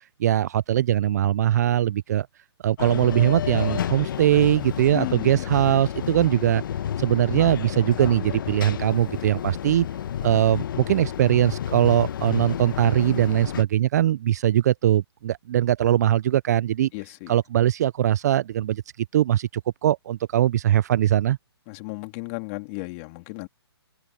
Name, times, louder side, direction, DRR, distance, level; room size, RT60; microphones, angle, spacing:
voice 1, 0.2-2.3 2.6-6.6 7.0-9.9 10.2-16.9 17.3-18.8 19.1-19.5 19.8-21.4, right 12 dB, 40° right, 0.4 m, -21 dB
sound 1, 2.8-13.6, left 10 dB, 50° left, 1.1 m, -31 dB
voice 2, 4.9-5.5 16.9-17.3 21.7-23.5, left 26 dB, 30° left, 3.1 m, -34 dB
hypercardioid pair, 150°, 14 cm